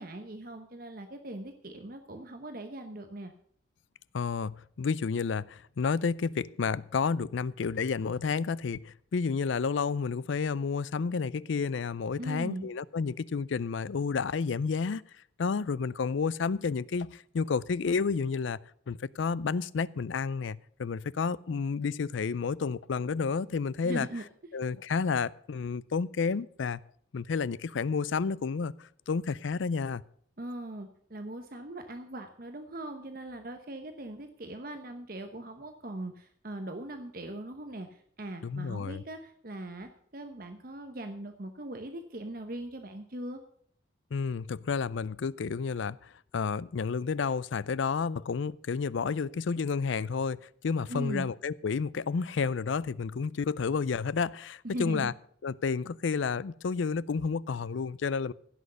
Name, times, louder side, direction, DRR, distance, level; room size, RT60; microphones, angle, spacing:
voice 1, 0.0-3.3 12.2-12.7 23.8-24.2 30.4-43.4 50.9-51.3 54.6-55.1, right 1 dB, 45° right, 1.0 m, -40 dB
voice 2, 4.1-15.0 15.4-18.6 18.9-24.1 24.5-26.8 27.1-30.0 38.4-39.0 44.1-55.1 55.4-58.3, left 5 dB, 75° left, 0.4 m, -31 dB
16.0 x 6.4 x 6.6 m
head